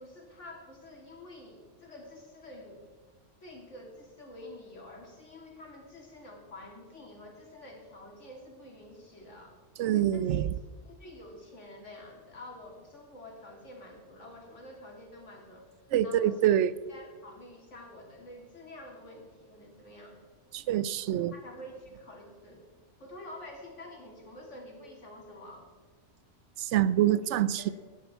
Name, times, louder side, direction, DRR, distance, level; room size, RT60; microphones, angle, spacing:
voice 1, 0.0-2.8 3.4-9.6 10.1-10.4 10.8-15.6 16.0-16.5 16.9-20.2 21.3-22.6 23.0-25.7 27.6-27.7, left 1 dB, 90° left, 0 dB, 3.2 m, -48 dB
voice 2, 9.8-10.5 15.9-16.7 20.5-21.3 26.6-27.7, right 11 dB, 75° right, 17 dB, 0.9 m, -25 dB
17.0 x 11.5 x 4.4 m, 1.4 s
omnidirectional pair, 1.2 m